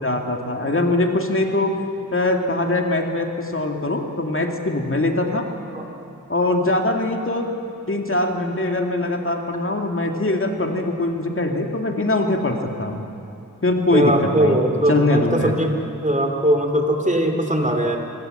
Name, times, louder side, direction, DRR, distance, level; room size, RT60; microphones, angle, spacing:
voice 1, 0.0-1.7 2.1-5.5 6.3-7.5 7.9-13.0 13.6-14.6 14.9-15.5, left 2 dB, 40° left, 2 dB, 2.4 m, -22 dB
voice 2, 13.9-15.7 16.0-18.0, right 1 dB, 20° right, 4 dB, 2.8 m, -20 dB
25.5 x 23.0 x 7.9 m, 2.6 s
wide cardioid pair, 75°, 33 cm